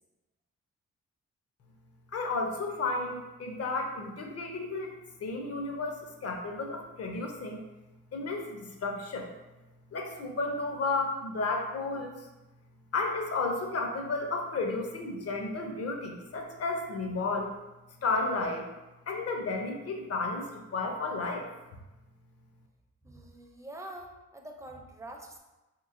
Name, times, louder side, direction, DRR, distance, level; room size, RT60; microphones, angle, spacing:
voice 1, 2.1-4.9 5.2-7.6 8.1-9.3 9.9-12.3 12.9-17.5 18.0-18.7 19.1-21.5, left 3 dB, 55° left, 2 dB, 0.6 m, -32 dB
voice 2, 23.0-25.4, right 1 dB, 10° right, 1 dB, 0.4 m, -45 dB
3.3 x 3.0 x 2.4 m, 1.0 s
cardioid pair, 100°, 29 cm